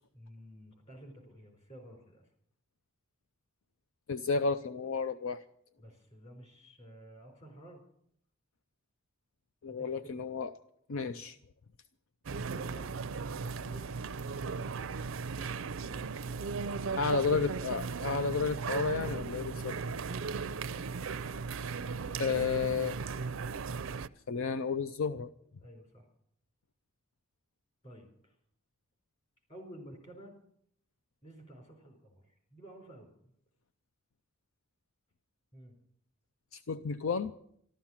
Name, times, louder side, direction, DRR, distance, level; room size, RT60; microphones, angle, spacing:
voice 1, 0.1-2.3 5.8-7.8 9.7-10.3 12.3-12.9 19.6-21.2 25.6-26.1 27.8-28.4 29.5-30.3 31.2-33.3 35.5-35.7, right 1 dB, 35° left, 3 dB, 4.4 m, -52 dB
voice 2, 4.1-5.4 9.6-10.5 10.9-11.4 17.0-19.7 22.2-23.0 24.3-25.3 36.5-37.3, left 5 dB, 70° left, 12 dB, 0.5 m, -32 dB
sound 1, 12.2-24.1, right 5 dB, 70° right, 0.5 m, -37 dB
13.5 x 13.0 x 7.3 m, 0.68 s
head